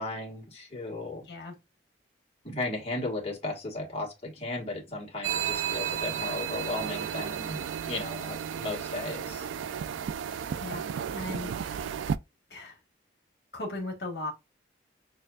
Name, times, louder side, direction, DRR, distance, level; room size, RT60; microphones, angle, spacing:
voice 1, 0.0-1.2 2.4-9.5, left 2 dB, 30° left, 1.6 m, -35 dB
sound 1, 5.2-12.2, right 8 dB, 85° right, 0.3 m, -33 dB
voice 2, 10.6-11.5 12.5-12.8 13.5-14.3, left 2 dB, 60° left, 1.5 m, -37 dB
6.2 x 2.5 x 2.3 m
head